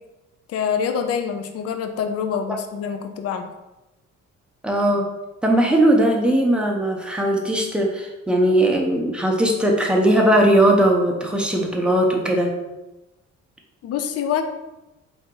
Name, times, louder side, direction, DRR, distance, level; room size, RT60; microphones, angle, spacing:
voice 1, 0.5-3.5 13.8-14.4, left 7 dB, 55° left, 7 dB, 0.5 m, -25 dB
voice 2, 4.6-5.1 5.4-12.5, right 1 dB, 5° right, 0 dB, 0.8 m, -19 dB
3.9 x 2.9 x 3.7 m, 1.0 s
cardioid pair, 90°, 30 cm